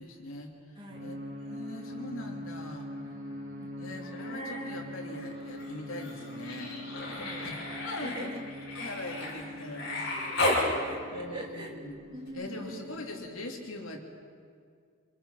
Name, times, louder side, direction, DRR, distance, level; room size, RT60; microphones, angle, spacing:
voice 1, 0.0-2.9 3.8-8.4 8.7-10.7 11.1-11.9 12.3-14.0, left 2 dB, 80° left, 1 dB, 3.1 m, -42 dB
sound 1, 0.9-13.2, left 1 dB, 70° right, 6.6 m, -43 dB
voice 2, 3.0-4.0 7.1-7.5 8.0-8.4 10.1-11.7 12.1-12.8, equal, 25° right, 0 dB, 2.7 m, -44 dB
Human voice, 4.0-4.8 5.1-10.7 12.3-12.4, left 2 dB, 55° left, 6.8 m, -34 dB
26.5 x 22.0 x 5.8 m, 2.1 s
head